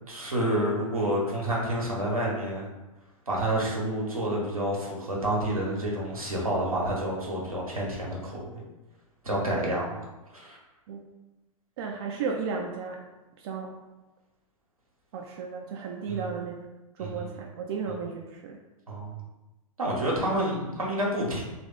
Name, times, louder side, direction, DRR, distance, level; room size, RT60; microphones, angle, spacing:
voice 1, 0.1-2.7 3.3-8.6 9.2-10.0 10.3-10.6 16.1-16.3 17.0-17.3 18.9-19.2 19.8-21.4, right 1 dB, 80° right, -4 dB, 1.1 m, -29 dB
voice 2, 11.8-13.0 13.4-13.7 15.1-16.6 17.0-18.6, right 5 dB, 45° right, 0 dB, 0.4 m, -34 dB
3.1 x 2.5 x 3.6 m, 1.0 s
figure-of-eight pair, 95°, 18 cm